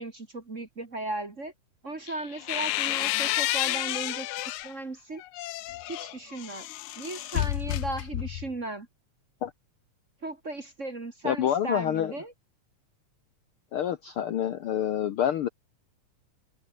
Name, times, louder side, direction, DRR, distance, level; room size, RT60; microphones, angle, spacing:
voice 1, 0.0-1.5 1.8-5.2 5.9-6.7 7.0-8.9 10.2-12.3, right 2 dB, 30° right, 1.9 m, -36 dB
sound 1, 2.1-4.7 5.2-8.5, left 16 dB, 80° left, 2.2 m, -31 dB
voice 2, 11.2-12.1 13.7-15.5, left 10 dB, 65° left, 1.4 m, -27 dB
omnidirectional pair, 3.5 m